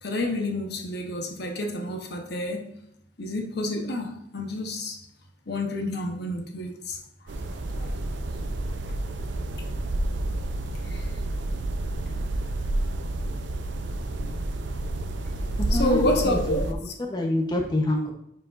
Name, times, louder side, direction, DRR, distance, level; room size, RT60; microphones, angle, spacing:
voice 1, 0.0-2.7 3.2-5.0 5.5-7.0 7.7-8.0 10.8-11.1 14.2-14.3 15.7-16.9, left 1 dB, 65° left, 1.0 m, -29 dB
sound 1, 7.3-16.7, right 1 dB, 85° right, 0.6 m, -30 dB
voice 2, 15.7-16.8 17.1-18.1, left 1 dB, 25° left, 0.9 m, -26 dB
9.4 x 4.8 x 2.6 m
head